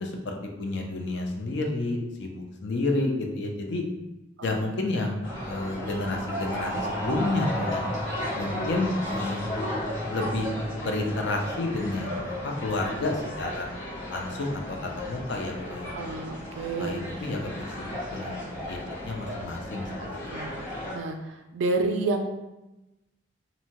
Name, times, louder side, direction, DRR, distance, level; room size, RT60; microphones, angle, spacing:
voice 1, 0.0-3.8 4.4-7.9 8.4-9.7 10.1-10.5 10.8-13.7 14.1-16.2 16.8-20.2, left 2 dB, 60° left, 2 dB, 0.4 m, -31 dB
sound 1, 5.2-20.9, left 1 dB, 85° left, 1.2 m, -34 dB
voice 2, 15.9-17.0 20.3-20.5 20.9-21.2 21.5-22.3, right 3 dB, 65° right, 4 dB, 0.3 m, -28 dB
2.7 x 2.1 x 2.8 m, 0.98 s
head